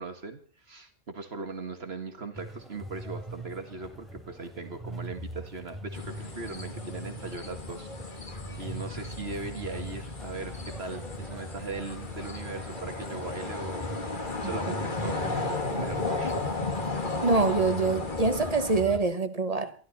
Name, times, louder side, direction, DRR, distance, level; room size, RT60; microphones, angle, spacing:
voice 1, 0.0-8.3 8.6-16.6, right 3 dB, 60° right, 2.0 m, -39 dB
sound 1, 2.3-19.0, equal, ahead, 3.5 m, -43 dB
sound 2, 5.9-18.8, left 3 dB, 40° left, 2.1 m, -34 dB
voice 2, 17.2-19.7, right 3 dB, 30° right, 1.3 m, -25 dB
28.0 x 12.0 x 4.2 m
omnidirectional pair, 1.2 m